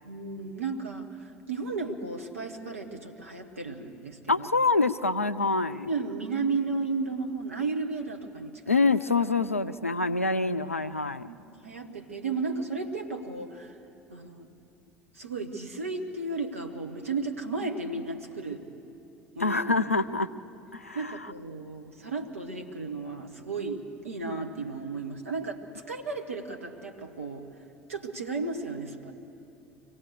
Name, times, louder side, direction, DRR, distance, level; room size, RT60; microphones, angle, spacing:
voice 1, 0.0-4.5 5.9-8.8 11.2-13.8 14.1-14.5 15.1-18.6 19.3-19.8 20.9-27.4 27.9-29.1, right 3 dB, 80° right, 3 dB, 1.4 m, -34 dB
voice 2, 4.3-5.9 8.7-11.3 19.4-20.3 20.7-21.2, left 3 dB, 90° left, 13 dB, 0.4 m, -26 dB
24.5 x 17.5 x 6.6 m, 2.7 s
figure-of-eight pair, 65°, 7 cm